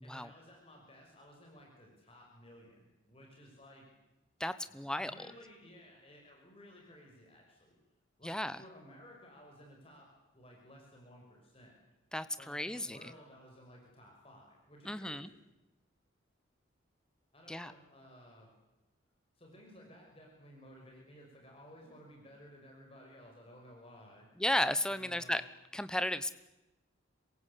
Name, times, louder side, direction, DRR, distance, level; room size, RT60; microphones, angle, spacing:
voice 1, 0.0-3.9 4.6-7.8 8.2-11.8 12.4-15.3 17.3-18.5 19.3-24.3 24.9-25.4, equal, 30° left, 0 dB, 5.9 m, -56 dB
voice 2, 4.4-5.1 8.2-8.6 12.1-13.0 14.9-15.3 17.5-17.7 24.4-25.4 25.7-26.3, left 1 dB, 5° left, 13 dB, 0.9 m, -34 dB
26.5 x 23.0 x 8.5 m, 1.0 s
head